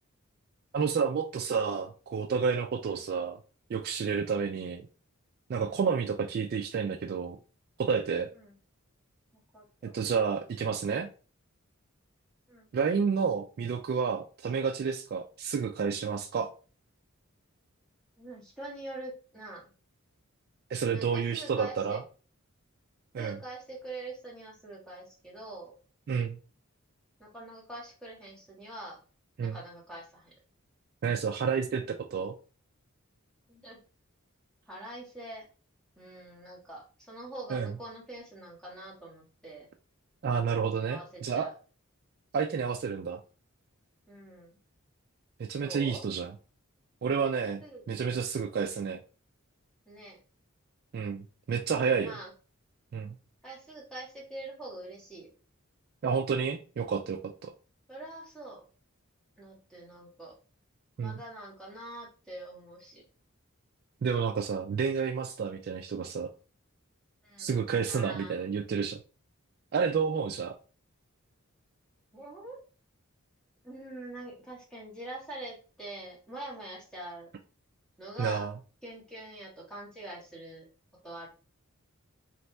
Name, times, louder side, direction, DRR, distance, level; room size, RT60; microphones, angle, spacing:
voice 1, 0.7-3.4 3.7-4.9 5.5-7.4 7.8-8.3 9.8-11.1 12.7-16.5 20.7-22.0 23.1-23.4 26.1-26.4 29.4-29.6 31.0-32.3 37.5-37.7 40.2-41.5 42.3-43.2 45.4-46.3 47.0-49.0 50.9-52.2 52.9-53.2 56.0-57.5 61.0-61.2 64.0-66.3 67.4-69.0 69.7-70.5 78.2-78.5, right 6 dB, 45° right, 4 dB, 0.3 m, -30 dB
voice 2, 9.5-10.0 12.5-12.7 18.2-19.6 20.9-22.0 23.2-25.7 27.2-29.0 29.4-30.3 33.5-33.8 34.7-35.5 35.9-39.7 40.9-41.5 44.1-44.5 45.6-46.0 47.6-47.8 48.7-48.9 49.8-50.2 51.7-52.3 53.4-55.3 57.9-58.6 59.4-60.3 61.0-63.0 67.2-67.6 67.9-68.4 72.1-72.6 73.6-77.3 78.0-78.5 78.8-80.6 81.0-81.3, right 2 dB, 5° left, -5 dB, 1.6 m, -44 dB
4.0 x 3.2 x 3.3 m, 0.37 s
head